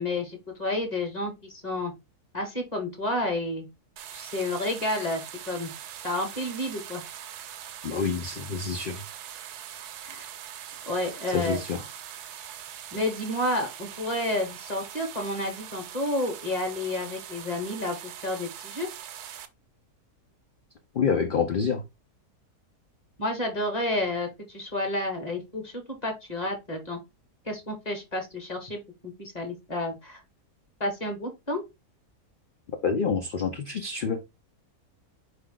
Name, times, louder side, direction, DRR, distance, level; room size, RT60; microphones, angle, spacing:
voice 1, 0.0-1.9 2.3-3.7 4.1-5.2 5.5-5.7 6.0-7.0 10.1-10.3 10.8-11.6 12.9-18.9 23.2-27.0 27.5-30.2 30.8-31.6, left 1 dB, 30° left, 1.0 m, -30 dB
sound 1, 4.0-19.5, right 10 dB, 80° right, 1.1 m, -42 dB
voice 2, 7.8-9.0 11.3-11.8 20.9-21.8 32.8-34.2, left 5 dB, 85° left, 0.4 m, -27 dB
4.7 x 2.8 x 3.7 m
omnidirectional pair, 1.6 m